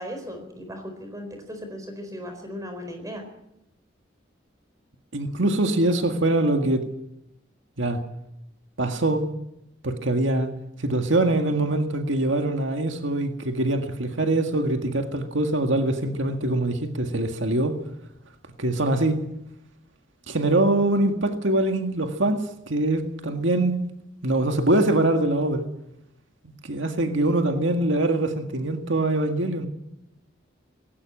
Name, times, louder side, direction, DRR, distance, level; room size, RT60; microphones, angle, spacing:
voice 1, 0.0-3.2, equal, 20° right, 5 dB, 4.4 m, -37 dB
voice 2, 5.1-6.8 7.8-8.0 8.8-9.2 9.8-10.5 10.8-17.8 18.6-19.2 20.3-23.8 24.2-25.7 26.4-29.7, right 2 dB, 80° right, 5 dB, 1.9 m, -23 dB
18.0 x 16.5 x 8.8 m, 0.83 s
head